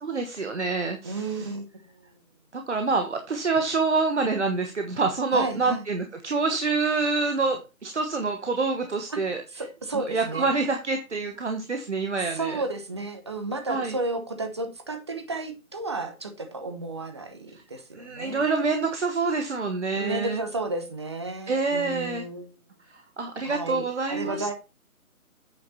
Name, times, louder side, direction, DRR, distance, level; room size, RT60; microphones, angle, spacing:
voice 1, 0.0-1.5 2.5-9.4 10.1-12.6 13.7-14.0 17.9-20.4 21.5-22.2 23.2-24.5, right 4 dB, 50° right, 1.4 m, -27 dB
voice 2, 1.0-2.1 5.3-5.9 9.1-9.2 9.5-10.5 12.2-18.5 19.9-22.5 23.4-24.5, right 2 dB, 20° right, 0.9 m, -33 dB
8.6 x 5.9 x 4.3 m
figure-of-eight pair, 150°, 44 cm